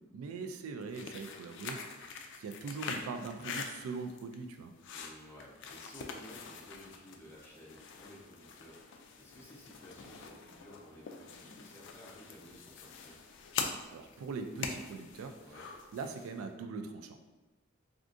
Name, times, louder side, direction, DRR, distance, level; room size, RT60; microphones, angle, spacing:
voice 1, 0.1-4.7 13.9-17.2, right 4 dB, 80° right, 7 dB, 0.3 m, -42 dB
sound 1, 0.8-16.4, left 5 dB, 60° left, 0.3 m, -44 dB
voice 2, 4.9-13.2 15.4-15.7, equal, 10° left, -6 dB, 0.6 m, -54 dB
3.5 x 2.4 x 2.5 m, 1.1 s
head